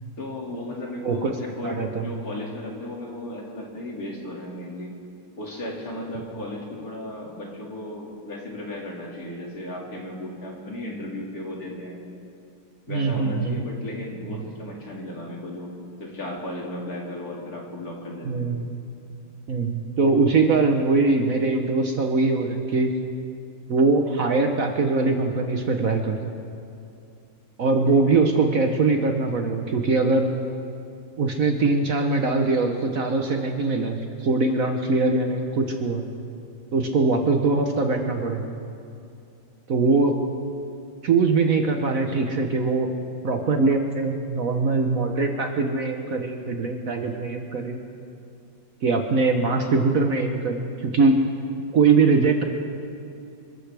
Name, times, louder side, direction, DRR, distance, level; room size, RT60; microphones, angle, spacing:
voice 1, 0.2-4.9 5.4-12.0 12.9-15.7 16.0-18.5, left 1 dB, 50° left, -2 dB, 2.8 m, -35 dB
voice 2, 1.6-2.1 12.9-13.6 18.2-18.8 19.5-22.9 23.7-26.3 27.6-30.3 31.2-36.0 36.7-38.6 39.7-40.1 41.0-42.9 43.2-47.8 48.8-51.2 51.7-52.4, right 3 dB, 55° right, 4 dB, 1.2 m, -22 dB
27.5 x 14.0 x 3.4 m, 2.5 s
omnidirectional pair, 2.0 m